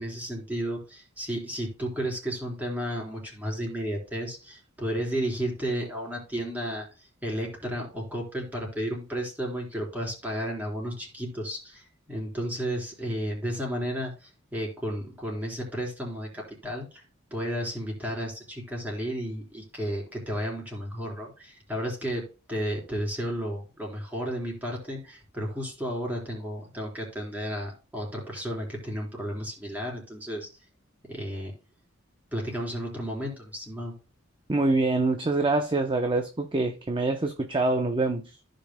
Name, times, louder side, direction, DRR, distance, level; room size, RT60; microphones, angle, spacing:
voice 1, 0.0-17.0 17.3-30.5 31.1-31.5 32.3-33.9, equal, 10° right, 3.8 m, -33 dB
voice 2, 34.5-38.2, right 2 dB, 25° right, 0.7 m, -25 dB
15.0 x 5.3 x 2.2 m
head